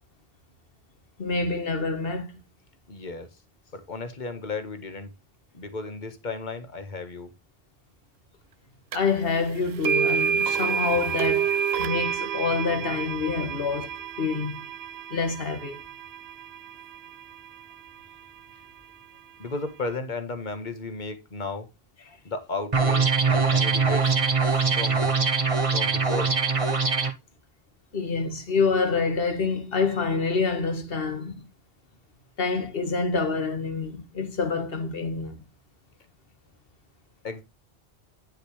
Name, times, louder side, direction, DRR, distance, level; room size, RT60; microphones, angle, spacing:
voice 1, 1.2-2.4 8.9-14.7 15.1-15.8 24.5-24.8 27.9-31.4 32.4-35.4, left 4 dB, 65° left, 1.7 m, -27 dB
voice 2, 2.9-3.3 3.7-5.1 5.5-7.3 19.4-21.7 22.2-24.1 24.8-25.1 25.7-26.3 37.2-37.4, left 3 dB, 50° left, 1.6 m, -34 dB
sound 1, 8.9-9.0 9.8-17.9, right 7 dB, 90° right, 0.9 m, -29 dB
sound 2, 22.7-27.1, right 5 dB, 35° right, 1.1 m, -22 dB
10.0 x 6.6 x 3.2 m
omnidirectional pair, 1.0 m